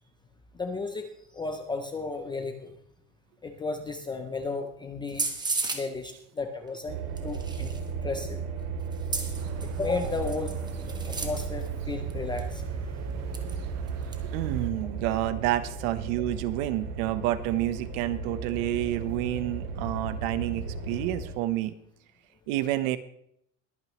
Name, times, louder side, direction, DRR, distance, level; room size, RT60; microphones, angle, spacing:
voice 1, 0.5-2.7 3.4-5.3 5.7-7.7 8.0-8.4 9.6-10.5 11.1-12.9, left 3 dB, 10° left, 6 dB, 0.4 m, -34 dB
sound 1, 5.1-5.8 7.2-7.9 8.9-11.7 12.1-12.2 12.4-12.5 13.3-13.6 13.9-14.2, right 3 dB, 10° right, 1.0 m, -34 dB
sound 2, 6.9-21.3, right 5 dB, 85° right, 3.2 m, -35 dB
sound 3, 9.4-14.7, right 8 dB, 35° right, 1.0 m, -42 dB
voice 2, 14.3-21.7 22.5-23.0, right 14 dB, 65° right, 13 dB, 1.0 m, -29 dB
22.0 x 8.9 x 3.1 m, 0.70 s
cardioid pair, 165°, 46 cm